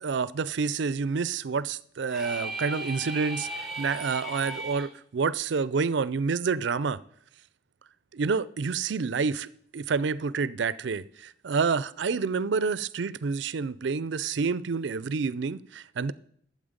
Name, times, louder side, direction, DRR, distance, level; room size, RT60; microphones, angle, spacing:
voice 1, 0.0-7.0 8.1-9.5 9.7-16.1, right 5 dB, 70° right, 0.4 m, -28 dB
sound 1, 2.1-4.9, right 1 dB, ahead, 1.5 m, -36 dB
12.5 x 7.6 x 5.1 m
head